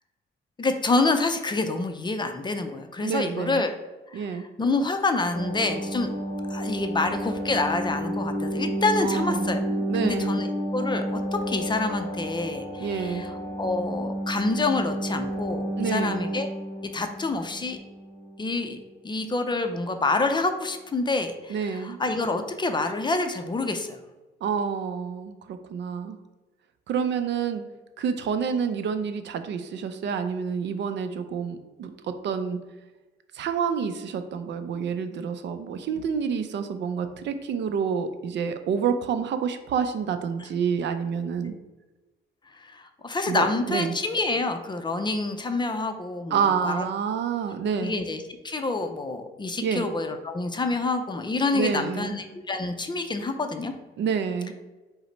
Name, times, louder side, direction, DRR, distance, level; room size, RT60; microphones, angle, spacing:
voice 1, 0.6-3.7 4.1-6.1 6.5-9.6 10.0-11.2 11.5-13.3 13.6-16.5 16.9-17.8 18.4-18.8 19.0-24.0 41.4-41.5 42.5-46.8 47.8-53.7, left 3 dB, 25° left, 6 dB, 0.5 m, -27 dB
voice 2, 3.0-3.6 4.1-4.4 8.7-10.4 12.8-13.2 15.8-16.2 21.5-22.0 24.4-26.2 26.9-27.6 28.0-32.6 33.3-41.5 43.3-44.0 46.3-48.0 49.6-49.9 51.5-52.1 54.0-54.5, right 6 dB, 65° right, 9 dB, 0.4 m, -28 dB
sound 1, 5.3-18.4 18.7-18.8, right 1 dB, 30° right, 1.4 m, -31 dB
4.9 x 2.1 x 3.9 m, 1.2 s
cardioid pair, 90°, 20 cm